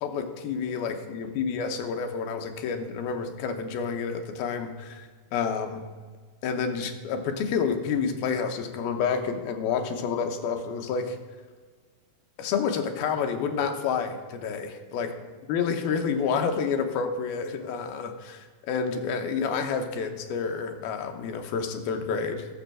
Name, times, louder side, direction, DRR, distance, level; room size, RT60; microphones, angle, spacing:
voice 1, 0.0-5.8 6.4-11.2 12.4-15.1 15.5-22.5, left 6 dB, 85° left, 5 dB, 2.8 m, -29 dB
12.5 x 6.4 x 7.5 m, 1.5 s
omnidirectional pair, 4.2 m